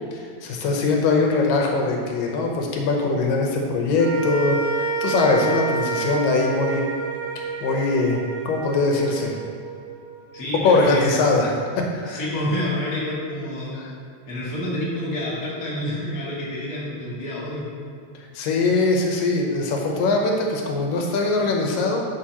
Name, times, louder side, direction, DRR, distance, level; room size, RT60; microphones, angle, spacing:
voice 1, 0.1-6.9 7.4-9.4 10.6-12.2 13.8-13.9 18.3-22.1, left 3 dB, 85° left, 1 dB, 2.6 m, -22 dB
sound 1, 4.0-10.4, right 4 dB, 60° right, 1.4 m, -29 dB
voice 2, 10.3-11.0 12.1-13.8 14.3-17.7, left 1 dB, 30° left, -8 dB, 2.3 m, -28 dB
11.5 x 6.6 x 3.0 m, 2.3 s
omnidirectional pair, 3.8 m